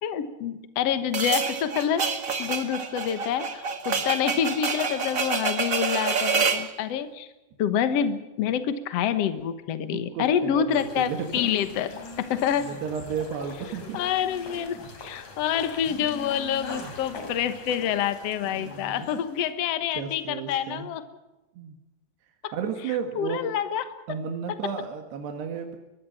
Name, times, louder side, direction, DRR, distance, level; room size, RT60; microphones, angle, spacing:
voice 1, 0.0-2.1 2.4-7.3 7.6-11.9 12.2-12.7 13.9-21.0 22.4-22.5 23.1-23.8, left 9 dB, 70° left, 11 dB, 1.5 m, -27 dB
sound 1, 1.1-6.7, right 5 dB, 55° right, 0.9 m, -27 dB
voice 2, 9.7-11.5 12.6-14.0 18.4-19.1 20.0-20.9 21.6-21.8 22.5-23.5 24.1-25.8, right 7 dB, 80° right, 4 dB, 3.9 m, -33 dB
sound 2, 10.7-19.5, left 3 dB, 45° left, 4.3 m, -43 dB
Telephone, 11.7-13.0 13.4-15.0 15.7-17.2, left 2 dB, 30° left, 2.7 m, -43 dB
24.0 x 21.5 x 5.9 m, 1.0 s
omnidirectional pair, 4.8 m